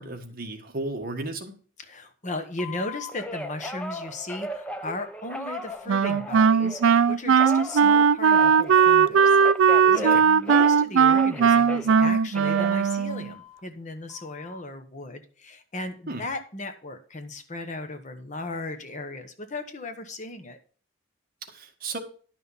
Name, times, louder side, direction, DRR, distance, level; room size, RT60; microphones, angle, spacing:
voice 1, 0.0-1.6 9.9-10.2 16.1-16.3 21.5-22.0, right 2 dB, 45° right, 4 dB, 1.5 m, -34 dB
voice 2, 1.8-20.6, left 2 dB, 35° left, 7 dB, 1.1 m, -36 dB
Telephone, 2.6-6.9 7.4-10.8 11.1-13.6 14.1-14.6, left 1 dB, 5° left, 0.7 m, -37 dB
Wind instrument woodwind instrument, 5.9-13.3, right 6 dB, 65° right, 0.3 m, -19 dB
11.0 x 6.0 x 5.5 m, 0.43 s
head